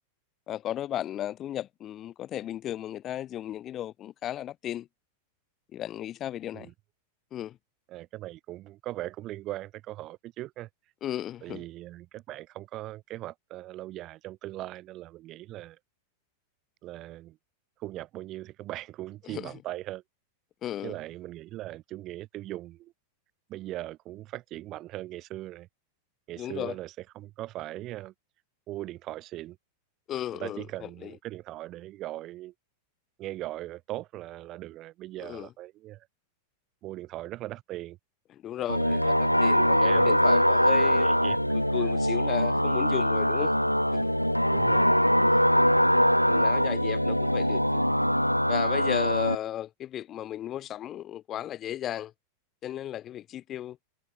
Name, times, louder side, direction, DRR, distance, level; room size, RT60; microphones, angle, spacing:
voice 1, 0.5-4.9 5.7-6.7 7.3-7.5 11.0-11.6 19.3-19.4 20.6-20.9 26.4-26.7 30.1-30.6 35.2-35.5 38.4-41.1 41.7-43.5 43.9-44.1 46.3-47.8 48.5-52.1 52.6-53.8, left 12 dB, 30° left, 0.7 m, -35 dB
voice 2, 7.9-10.7 11.4-15.8 16.8-17.4 17.8-20.0 20.8-22.9 23.5-25.7 26.3-28.1 28.7-29.6 30.3-32.5 33.2-36.1 36.8-38.0 38.7-41.4 41.8-41.9 44.5-44.9, right 16 dB, 35° right, 1.6 m, -40 dB
sound 1, 38.7-49.3, equal, 90° left, 0.7 m, -23 dB
figure-of-eight pair, 90°, 0 cm